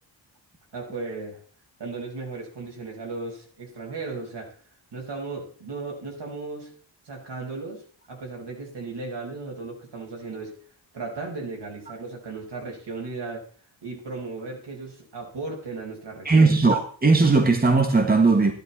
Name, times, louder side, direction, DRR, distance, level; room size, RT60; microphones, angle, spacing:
voice 1, 0.7-1.4 1.8-4.5 4.9-6.7 7.1-10.5 10.9-13.5 13.8-16.5, right 3 dB, 65° right, 5.4 m, -36 dB
voice 2, 16.2-18.5, right 3 dB, 20° right, 1.6 m, -18 dB
13.5 x 11.5 x 4.2 m
wide cardioid pair, 125°, 45 cm